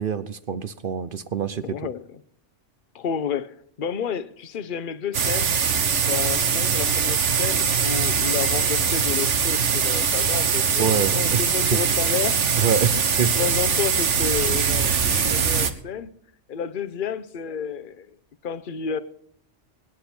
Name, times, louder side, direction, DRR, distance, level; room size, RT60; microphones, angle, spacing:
voice 1, 0.0-1.6 10.8-11.4 12.6-13.3, right 7 dB, 50° right, 0.8 m, -25 dB
voice 2, 1.6-2.2 2.9-5.6 6.0-12.4 12.9-16.1 16.5-18.2 18.4-19.0, left 7 dB, 45° left, 0.9 m, -31 dB
sound 1, 5.1-15.7, right 6 dB, 70° right, 1.4 m, -22 dB
23.5 x 10.0 x 4.4 m
omnidirectional pair, 1.3 m